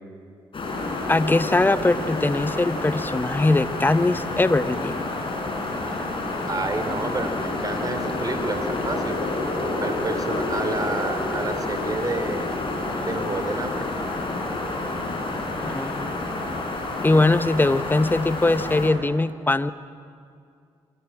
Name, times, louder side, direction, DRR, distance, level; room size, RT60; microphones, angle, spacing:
sound 1, 0.5-18.9, left 2 dB, 45° left, 6.5 m, -29 dB
voice 1, 1.1-5.1 15.6-16.2 17.0-19.7, left 2 dB, 15° left, 13 dB, 1.1 m, -21 dB
voice 2, 6.5-9.2 9.8-12.5 13.1-13.9, right 2 dB, 30° right, 8 dB, 3.6 m, -29 dB
28.5 x 24.0 x 7.4 m, 2.3 s
figure-of-eight pair, 40°, 13 cm